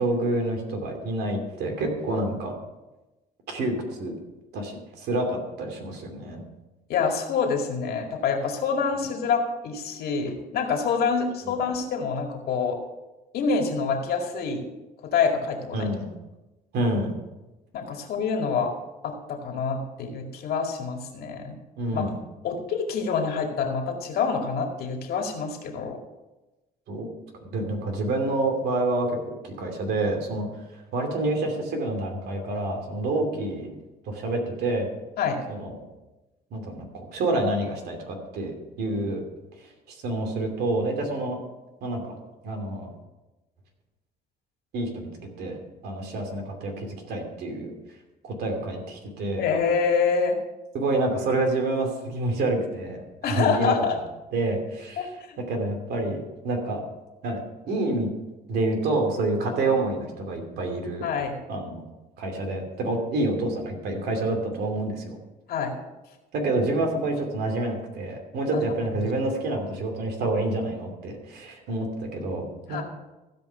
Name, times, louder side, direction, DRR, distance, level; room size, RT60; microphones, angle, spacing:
voice 1, 0.0-2.5 3.5-4.1 4.5-6.4 15.7-16.1 16.7-17.2 21.8-22.2 26.9-27.1 27.4-29.2 29.4-30.5 30.9-33.7 34.0-34.9 35.5-35.7 36.5-39.2 39.9-41.4 41.8-42.2 42.4-42.9 44.7-45.1 45.4-47.7 48.2-49.5 50.7-53.9 54.3-55.1 55.5-56.8 57.2-57.4 57.7-58.1 58.5-61.0 61.5-61.8 62.2-65.2 66.3-72.8, right 2 dB, 70° right, 3 dB, 2.7 m, -28 dB
voice 2, 6.9-12.8 13.3-14.6 15.0-15.9 17.7-18.7 19.0-21.6 21.9-22.0 22.4-26.0 35.2-35.4 49.4-50.3 53.2-53.9 55.0-55.4 61.0-61.3 65.5-65.8 68.5-68.6 72.7-72.8, left 5 dB, 65° left, 2 dB, 2.1 m, -26 dB
15.5 x 5.3 x 5.6 m, 1.1 s
cardioid pair, 110°, 17 cm